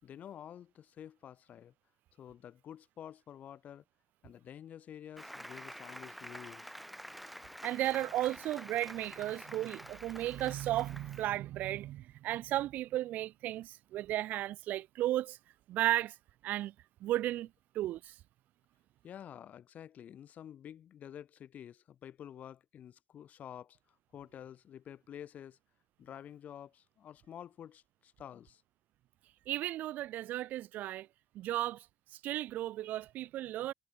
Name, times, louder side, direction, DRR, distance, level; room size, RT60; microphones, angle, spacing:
voice 1, 0.0-1.7 2.2-3.8 4.2-6.7 19.0-25.6 26.0-28.6, left 9 dB, 60° left, 5.6 m, -49 dB
Applause, 5.2-11.3, equal, ahead, 4.5 m, -48 dB
voice 2, 7.6-15.4 15.7-16.1 16.4-16.7 17.0-17.5 17.7-18.1 29.5-31.1 31.3-31.9 32.2-33.7, right 14 dB, 75° right, 0.3 m, -34 dB
supercardioid pair, 80°, 3 cm